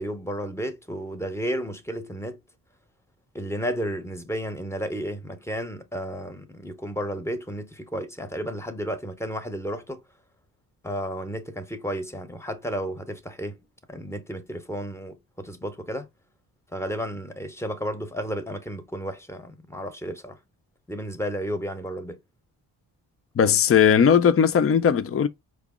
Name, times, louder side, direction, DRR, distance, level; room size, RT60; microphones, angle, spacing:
voice 1, 0.0-2.4 3.3-10.0 10.8-13.6 13.9-16.1 16.7-20.4 20.9-22.2, equal, 5° left, 0.8 m, -32 dB
voice 2, 23.4-25.3, left 7 dB, 30° left, 0.5 m, -18 dB
4.7 x 2.0 x 3.6 m
cardioid pair, 50°, 49 cm